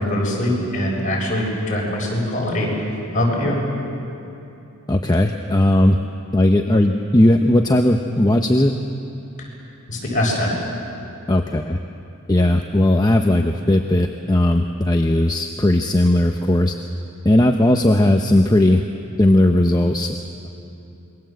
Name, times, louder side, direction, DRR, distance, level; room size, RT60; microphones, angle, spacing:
voice 1, 0.0-2.7 3.1-3.6 9.9-10.6, left 1 dB, 35° left, -3 dB, 7.4 m, -22 dB
voice 2, 4.9-6.0 6.3-8.7 11.3-11.8 12.3-16.7 17.2-18.8 19.2-20.2, left 1 dB, 20° left, 4 dB, 0.8 m, -17 dB
27.0 x 23.0 x 7.8 m, 2.9 s
head